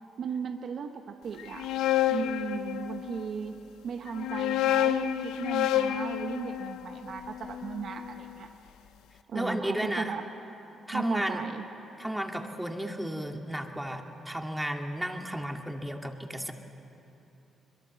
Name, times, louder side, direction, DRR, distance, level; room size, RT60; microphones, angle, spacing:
voice 1, 0.2-1.7 2.1-3.6 3.8-8.5 9.3-10.3 10.9-11.7, right 6 dB, 65° right, 6 dB, 1.0 m, -37 dB
sound 1, 1.4-3.3 4.1-8.2, left 11 dB, 80° left, 0.7 m, -29 dB
voice 2, 9.3-10.1 10.9-11.4 12.0-16.5, equal, 5° right, 3 dB, 2.2 m, -33 dB
22.5 x 22.0 x 7.7 m, 3.0 s
supercardioid pair, 55°, 0 cm